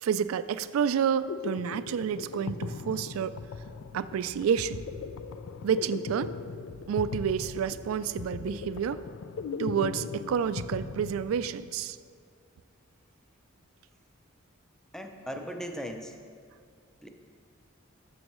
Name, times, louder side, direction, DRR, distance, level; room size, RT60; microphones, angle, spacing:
voice 1, 0.0-3.4 3.9-4.8 5.6-6.3 6.9-9.0 9.6-12.0, right 7 dB, 85° right, 14 dB, 0.3 m, -29 dB
sound 1, 1.0-11.8, left 5 dB, 70° left, 0.4 m, -39 dB
voice 2, 14.9-16.1 17.0-17.1, equal, 5° left, 4 dB, 0.5 m, -38 dB
13.5 x 6.2 x 3.1 m, 2.2 s
head